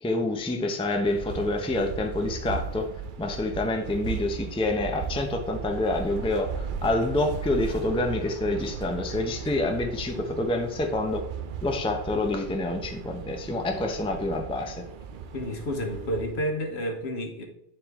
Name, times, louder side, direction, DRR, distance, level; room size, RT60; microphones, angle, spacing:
voice 1, 0.0-2.9 3.2-11.2 11.6-14.8, left 2 dB, 5° left, 3 dB, 0.6 m, -27 dB
sound 1, 0.9-16.6, right 7 dB, 60° right, 0.6 m, -37 dB
voice 2, 15.3-17.4, equal, 65° left, 3 dB, 1.4 m, -30 dB
10.0 x 3.7 x 3.6 m, 0.83 s
omnidirectional pair, 1.2 m